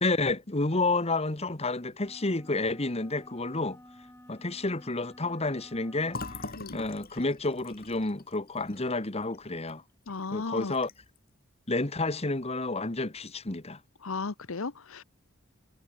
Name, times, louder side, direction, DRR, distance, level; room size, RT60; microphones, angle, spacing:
voice 1, 0.0-3.8 4.3-6.2 6.7-9.8 10.3-10.9 11.7-13.8, left 2 dB, 30° left, 1.6 m, -30 dB
sound 1, 2.0-6.6, left 1 dB, 10° left, 6.7 m, -52 dB
Fill (with liquid), 6.1-9.8 10.1-10.2 10.6-11.2, left 3 dB, 45° left, 6.9 m, -43 dB
voice 2, 10.1-10.7 14.0-15.0, left 4 dB, 85° left, 1.0 m, -35 dB
head